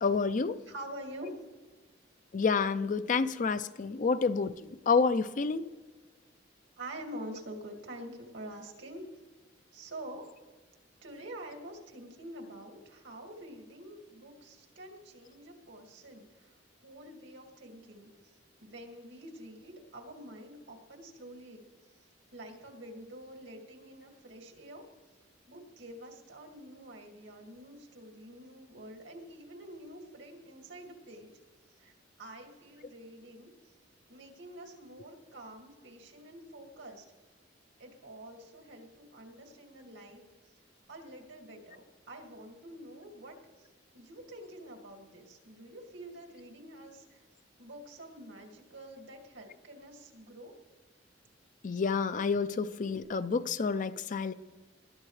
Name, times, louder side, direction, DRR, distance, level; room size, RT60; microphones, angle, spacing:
voice 1, 0.0-0.6 2.3-4.5 4.9-5.7 51.6-54.3, left 5 dB, 45° left, 13 dB, 0.4 m, -29 dB
voice 2, 0.6-1.3 6.8-9.0 9.7-10.3 11.0-16.5 16.8-18.1 18.6-21.6 22.3-24.8 25.5-31.3 31.8-31.9 32.2-33.5 34.1-37.0 37.8-40.2 40.9-43.7 43.9-47.2 47.6-50.5, right 1 dB, 90° right, 1 dB, 2.2 m, -47 dB
20.5 x 11.5 x 3.3 m, 1.3 s
head